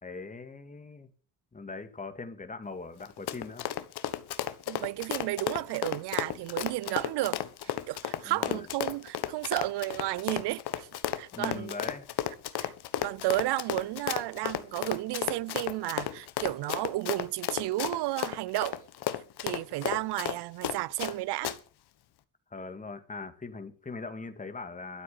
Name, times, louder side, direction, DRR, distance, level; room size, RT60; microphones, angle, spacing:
voice 1, 0.0-1.1 1.5-3.7 8.2-8.7 11.3-12.1 22.5-25.0, left 3 dB, 20° left, 2.0 m, -41 dB
Run, 3.0-21.1 21.4-21.6, left 12 dB, 65° left, 1.4 m, -33 dB
voice 2, 4.7-10.9 11.1-11.8 12.6-12.7 13.0-18.9 19.4-21.5, right 18 dB, 70° right, 0.6 m, -32 dB
12.5 x 7.9 x 7.3 m
cardioid pair, 115°, 42 cm